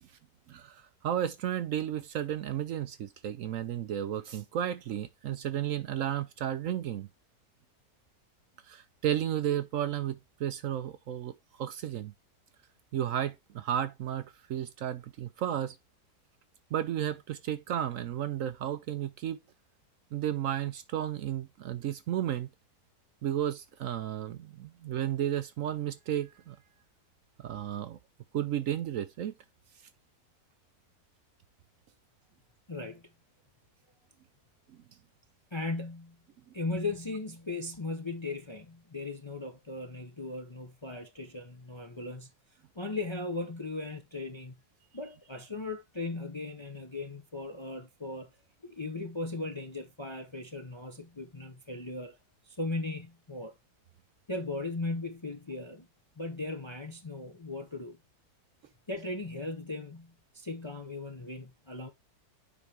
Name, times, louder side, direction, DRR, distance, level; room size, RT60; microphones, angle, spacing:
voice 1, 1.0-7.1 8.7-11.3 11.6-12.1 12.9-15.8 16.7-19.4 20.1-22.5 23.2-26.6 27.4-28.0 28.3-29.3, right 10 dB, 65° right, 0.9 m, -33 dB
voice 2, 32.7-33.1 35.5-36.2 36.5-42.3 42.7-44.6 44.9-48.3 48.6-52.2 52.4-53.5 54.3-55.9 56.2-58.0 58.9-61.9, left 2 dB, 25° left, 0.6 m, -37 dB
7.0 x 5.2 x 3.4 m
omnidirectional pair, 1.7 m